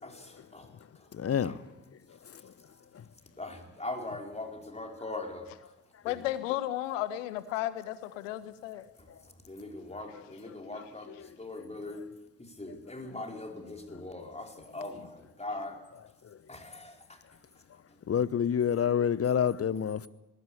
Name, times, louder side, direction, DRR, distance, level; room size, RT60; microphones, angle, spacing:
voice 1, 0.0-1.1 1.4-1.6 3.4-5.5 6.0-6.3 9.0-15.8 16.5-17.2 17.9-18.0, left 2 dB, 15° left, 4.8 m, -41 dB
voice 2, 1.1-1.5 2.2-2.5 2.9-3.0 11.5-11.6 16.2-16.4 18.1-20.1, left 8 dB, 40° left, 1.0 m, -28 dB
voice 3, 6.0-8.8, left 14 dB, 80° left, 0.9 m, -33 dB
20.5 x 18.5 x 8.7 m
figure-of-eight pair, 40°, 38 cm